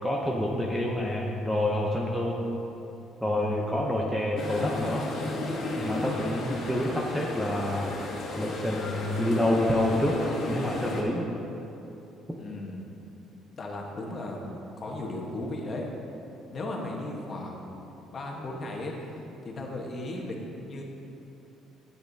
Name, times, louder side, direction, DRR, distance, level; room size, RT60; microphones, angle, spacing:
voice 1, 0.0-2.4 3.2-5.1 5.8-7.9 8.4-11.3, left 1 dB, ahead, -2 dB, 0.6 m, -28 dB
sound 1, 4.4-11.0, left 2 dB, 45° left, 1.6 m, -34 dB
voice 2, 12.4-13.0 13.6-15.9 16.5-20.8, left 1 dB, 30° left, -1 dB, 1.1 m, -36 dB
12.0 x 8.2 x 2.7 m, 2.9 s
cardioid pair, 165°, 0 cm